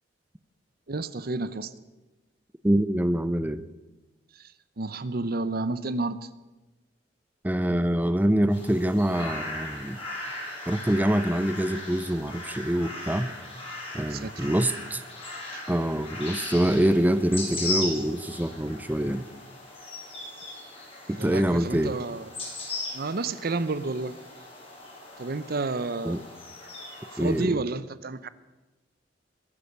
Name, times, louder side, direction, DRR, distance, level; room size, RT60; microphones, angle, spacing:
voice 1, 0.9-1.7 4.3-6.3 14.1-14.5 15.5-15.6 21.2-22.3 22.9-24.2 25.2-26.2 27.1-28.3, right 3 dB, 55° right, 0.8 m, -31 dB
voice 2, 2.6-3.6 7.4-10.0 10.7-13.3 13.9-15.0 15.7-19.2 21.1-21.9 26.0-26.2 27.2-27.6, right 1 dB, 10° right, 0.5 m, -25 dB
sound 1, 8.5-27.4, left 2 dB, 30° left, 6.8 m, -38 dB
21.5 x 9.8 x 6.7 m
head